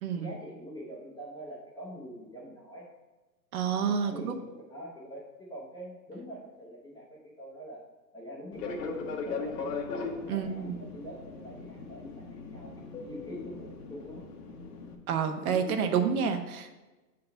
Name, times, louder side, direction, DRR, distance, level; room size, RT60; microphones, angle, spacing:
voice 1, 0.1-2.9 3.8-7.8 8.1-9.8 10.2-12.8 13.0-14.3 15.2-16.1 16.5-16.6, equal, 10° left, -4 dB, 0.5 m, -44 dB
voice 2, 3.5-4.3 10.3-10.8 15.1-16.9, right 7 dB, 60° right, 6 dB, 0.8 m, -29 dB
Fixed-wing aircraft airplane, 8.5-14.9, left 4 dB, 65° left, 1.1 m, -39 dB
5.6 x 3.9 x 5.4 m, 1.2 s
hypercardioid pair, 125°, 50 cm